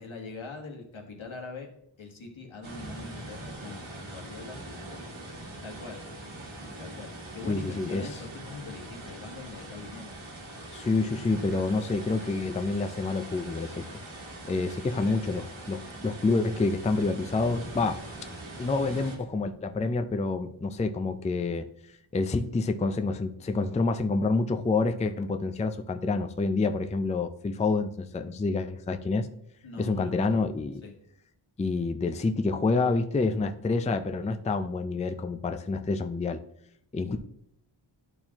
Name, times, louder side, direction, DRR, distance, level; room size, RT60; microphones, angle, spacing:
voice 1, 0.0-1.7 2.0-6.0 6.8-10.2 15.0-15.2 29.6-30.4 30.8-30.9, left 3 dB, 75° left, 1 dB, 1.5 m, -43 dB
sound 1, 2.6-19.2, right 2 dB, 75° right, 1.7 m, -42 dB
voice 2, 7.5-8.1 10.7-13.9 14.4-18.0 18.6-21.7 22.1-29.3 29.8-30.8 31.6-36.4 36.9-37.2, left 3 dB, 15° left, 7 dB, 0.4 m, -28 dB
11.0 x 4.4 x 2.9 m, 0.73 s
wide cardioid pair, 70°, 47 cm